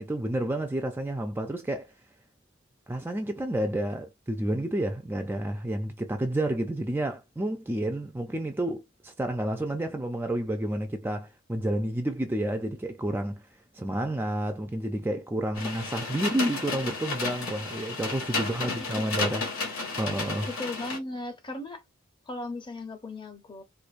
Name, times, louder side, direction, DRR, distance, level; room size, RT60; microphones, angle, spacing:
voice 1, 0.0-1.9 2.9-13.4 13.7-19.4 19.7-20.5, right 1 dB, 10° right, 0.3 m, -30 dB
sound 1, 15.5-21.0, left 3 dB, 80° left, 1.5 m, -33 dB
voice 2, 18.5-19.0 20.5-21.8 22.3-23.6, left 2 dB, 20° left, 0.7 m, -37 dB
4.4 x 2.5 x 2.5 m
head